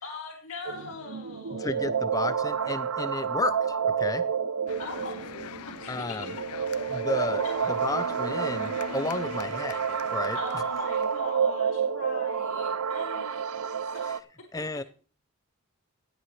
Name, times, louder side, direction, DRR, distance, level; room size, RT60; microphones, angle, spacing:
voice 1, 0.0-1.8 4.8-5.4 5.6-6.2 7.4-7.5 10.3-13.5 13.9-14.1, left 3 dB, 65° left, -1 dB, 2.7 m, -41 dB
sound 1, 0.6-14.2, right 6 dB, 80° right, 0.6 m, -29 dB
voice 2, 1.6-4.3 5.9-6.3 6.9-9.8 10.1-10.6 14.0-14.2 14.5-14.8, left 2 dB, 15° left, 14 dB, 0.4 m, -32 dB
sound 2, 4.7-11.4, left 7 dB, 85° left, 0.6 m, -43 dB
17.0 x 8.7 x 3.2 m, 0.39 s
head